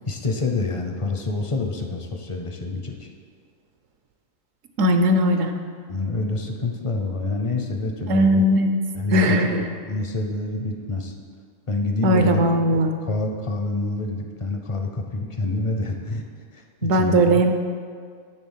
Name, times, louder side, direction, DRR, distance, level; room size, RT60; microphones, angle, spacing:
voice 1, 0.1-3.1 5.9-8.5 8.9-9.4 9.8-11.1 11.7-12.4 12.7-16.2 16.5-17.4, left 3 dB, 40° left, 4 dB, 0.5 m, -27 dB
voice 2, 4.8-5.5 8.1-8.7 9.1-9.7 12.0-12.9 16.8-17.5, right 1 dB, 75° right, 6 dB, 1.1 m, -18 dB
10.0 x 3.6 x 7.2 m, 2.1 s
omnidirectional pair, 1.4 m